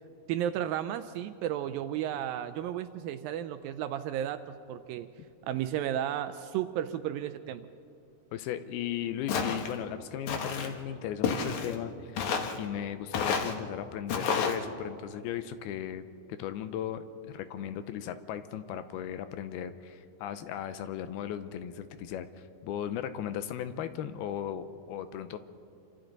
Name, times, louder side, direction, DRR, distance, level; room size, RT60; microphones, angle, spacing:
voice 1, 0.3-5.1 5.4-7.7, right 11 dB, 80° right, 10 dB, 2.1 m, -33 dB
voice 2, 8.3-16.0 16.3-25.4, left 10 dB, 80° left, 10 dB, 2.6 m, -37 dB
Walk footsteps, 9.3-9.7 10.3-10.7 11.2-11.8 12.2-12.6 13.1-13.5 14.1-14.6, left 6 dB, 60° left, 2.3 m, -30 dB
28.0 x 25.5 x 4.0 m, 2.4 s
omnidirectional pair, 4.5 m